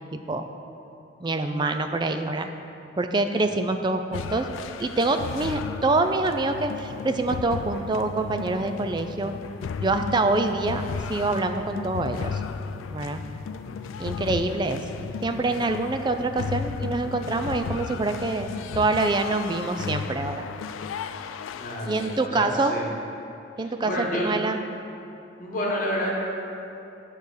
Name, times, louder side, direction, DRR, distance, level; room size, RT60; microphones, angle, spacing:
voice 1, 0.1-0.5 1.2-2.5 3.0-4.5 4.8-9.3 9.8-12.4 12.9-13.2 14.0-14.8 15.2-20.5 21.8-22.8 23.6-24.6, right 2 dB, 25° right, 7 dB, 0.3 m, -26 dB
sound 1, 4.1-22.3, left 6 dB, 85° left, 0.3 m, -34 dB
voice 2, 21.6-22.9 23.8-24.3 25.4-26.1, equal, 45° left, -3 dB, 1.3 m, -29 dB
9.1 x 4.1 x 6.5 m, 2.8 s
head